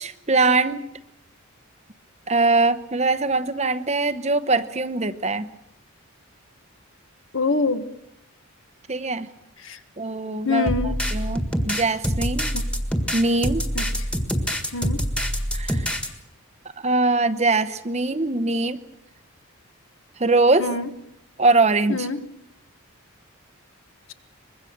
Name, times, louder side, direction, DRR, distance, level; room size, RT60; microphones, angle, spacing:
voice 1, 0.0-0.8 2.3-5.5 8.9-9.3 10.0-12.5 13.1-13.6 15.5-15.9 16.8-18.8 20.2-20.7 21.4-22.1, right 3 dB, 30° right, 11 dB, 0.9 m, -22 dB
voice 2, 7.3-7.9 9.6-9.8 10.4-11.0 12.5-12.6 13.7-13.9 14.7-15.1 20.6-20.9 21.9-22.3, left 4 dB, 60° left, 8 dB, 1.6 m, -25 dB
sound 1, 10.7-16.1, equal, 5° left, 1.7 m, -25 dB
24.5 x 22.0 x 6.7 m, 0.81 s
head